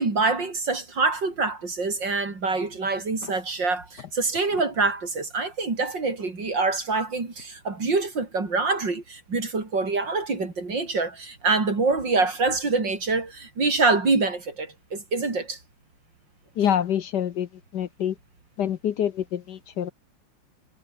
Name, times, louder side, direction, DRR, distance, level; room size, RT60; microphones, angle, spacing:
voice 1, 0.0-15.6, right 3 dB, 65° right, 5.0 m, -25 dB
voice 2, 16.6-17.5 17.7-18.1 18.6-19.9, left 9 dB, 65° left, 1.4 m, -26 dB
omnidirectional pair, 2.2 m